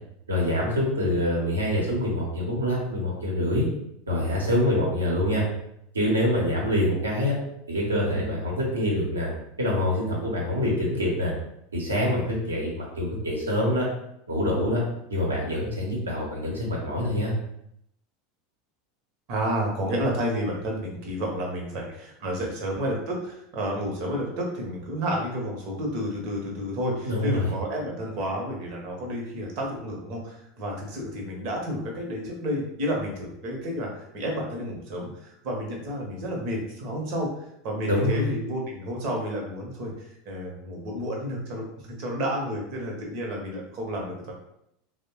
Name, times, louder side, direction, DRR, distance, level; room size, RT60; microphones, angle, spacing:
voice 1, 0.3-3.7 4.1-5.4 5.9-7.4 7.7-9.3 9.6-11.3 11.7-13.9 14.3-14.8 15.1-17.3 27.0-27.5 37.8-38.3, left 1 dB, 80° right, -3 dB, 0.8 m, -25 dB
voice 2, 19.3-44.3, equal, 50° right, 0 dB, 0.9 m, -31 dB
3.2 x 2.1 x 2.9 m, 0.77 s
figure-of-eight pair, 80°, 0 cm